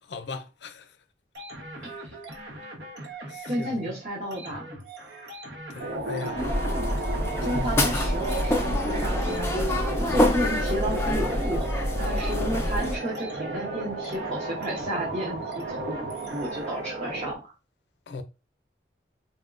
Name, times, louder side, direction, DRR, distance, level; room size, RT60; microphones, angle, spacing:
voice 1, 0.1-0.8 3.3-3.9 5.7-6.4 7.5-8.0 18.1-18.2, left 3 dB, 80° left, 0.5 m, -37 dB
sound 1, 1.3-17.1, right 2 dB, 75° right, 0.9 m, -42 dB
voice 2, 3.5-4.7 7.4-17.5, equal, 40° right, 0.8 m, -32 dB
sound 2, 5.8-17.4, right 2 dB, 60° right, 0.4 m, -34 dB
sound 3, 6.4-13.0, left 1 dB, 15° left, 0.4 m, -26 dB
4.2 x 2.3 x 2.4 m
head